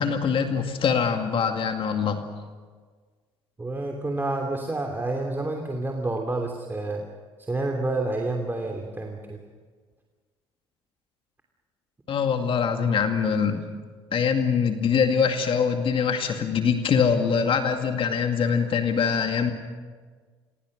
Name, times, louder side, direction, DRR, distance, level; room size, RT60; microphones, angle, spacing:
voice 1, 0.0-2.3 12.1-13.6 14.1-19.5, left 6 dB, 50° left, 5 dB, 2.2 m, -23 dB
voice 2, 3.6-7.0 7.4-9.4, right 2 dB, 20° right, 2 dB, 3.0 m, -29 dB
27.0 x 22.0 x 6.6 m, 1.5 s
hypercardioid pair, 65°, 12 cm